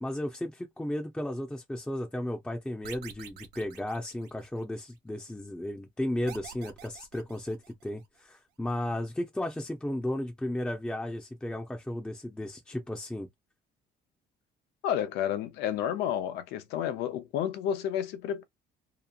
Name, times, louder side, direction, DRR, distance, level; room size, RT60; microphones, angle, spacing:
voice 1, 0.0-13.3, left 1 dB, 5° left, 0.6 m, -34 dB
sound 1, 2.8-4.8 6.3-8.1, right 9 dB, 80° right, 0.8 m, -48 dB
voice 2, 14.8-18.4, left 10 dB, 90° left, 0.6 m, -31 dB
2.9 x 2.4 x 2.3 m
cardioid pair, 110°, 17 cm